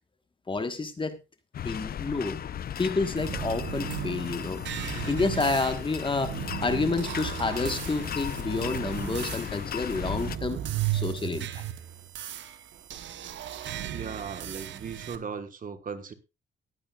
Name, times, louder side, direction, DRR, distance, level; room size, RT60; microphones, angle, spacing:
voice 1, 0.5-1.2 1.6-2.4 2.8-4.6 5.1-10.6 10.9-11.6, left 3 dB, 25° left, 9 dB, 1.4 m, -29 dB
sound 1, 1.5-10.4, left 9 dB, 50° left, 0.6 m, -36 dB
sound 2, 3.2-15.2, right 11 dB, 70° right, 1.0 m, -35 dB
voice 2, 13.9-16.1, right 6 dB, 45° right, 9 dB, 1.4 m, -37 dB
19.0 x 8.6 x 2.4 m, 0.26 s
cardioid pair, 90°, 20 cm